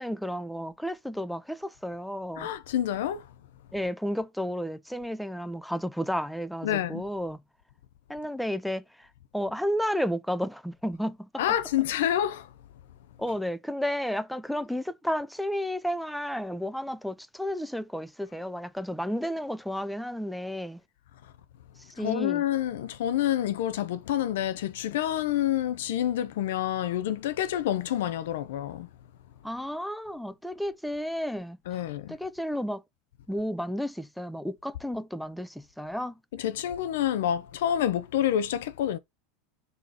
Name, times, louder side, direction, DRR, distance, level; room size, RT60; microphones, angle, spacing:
voice 1, 0.0-2.5 3.7-7.4 8.1-9.1 9.3-11.3 13.2-20.8 21.8-22.4 29.4-31.6 32.1-32.8 33.3-36.1, equal, ahead, 0.4 m, -32 dB
voice 2, 2.4-3.3 6.6-7.1 11.4-12.5 13.3-13.4 22.0-28.9 31.7-32.2 36.3-39.0, left 11 dB, 80° left, 0.4 m, -28 dB
3.9 x 2.8 x 4.8 m
hypercardioid pair, 100°, 0 cm